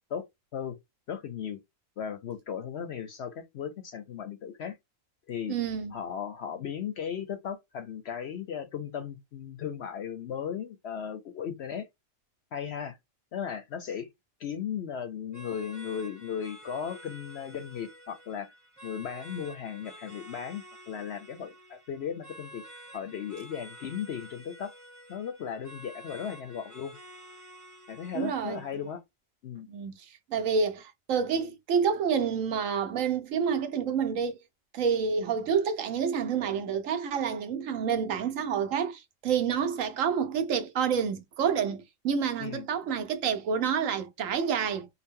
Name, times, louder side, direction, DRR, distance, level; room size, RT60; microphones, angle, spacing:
voice 1, 1.1-1.6 2.0-4.8 5.3-5.5 5.9-11.9 12.5-13.0 13.3-14.1 14.4-18.5 18.8-24.7 25.1-26.9 27.9-29.0 29.4-29.7 42.4-42.6, left 8 dB, 60° left, 0.7 m, -36 dB
voice 2, 5.5-5.9 28.1-28.6 29.7-30.0 30.3-34.4 34.7-44.9, right 6 dB, 70° right, 1.1 m, -28 dB
sound 1, 15.3-28.9, right 1 dB, 15° right, 1.2 m, -50 dB
4.0 x 2.1 x 3.6 m
omnidirectional pair, 1.5 m